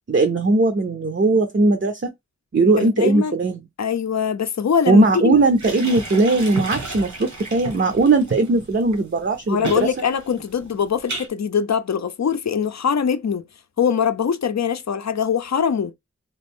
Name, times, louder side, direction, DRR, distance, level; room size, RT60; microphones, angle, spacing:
voice 1, 0.1-2.1 2.5-3.6 4.9-9.9, right 3 dB, 40° right, 0.5 m, -18 dB
voice 2, 2.8-3.4 3.8-5.4 9.5-13.4 13.8-15.9, left 7 dB, 65° left, 0.5 m, -22 dB
sound 1, 5.3-11.3, right 3 dB, 70° right, 1.0 m, -33 dB
3.0 x 2.5 x 3.5 m
wide cardioid pair, 50°, 30 cm